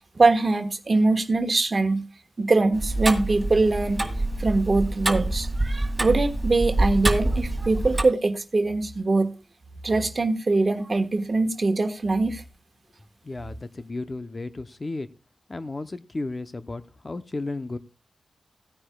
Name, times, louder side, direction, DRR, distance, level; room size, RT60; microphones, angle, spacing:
voice 1, 0.1-2.0 2.4-4.0 4.4-9.3 9.8-12.4, right 3 dB, 40° right, 1.3 m, -22 dB
Tick-tock, 2.7-8.0, right 2 dB, 20° right, 2.0 m, -26 dB
voice 2, 13.2-15.1 15.5-17.8, left 2 dB, 35° left, 0.7 m, -33 dB
17.5 x 9.7 x 2.3 m
cardioid pair, 75°, 0 cm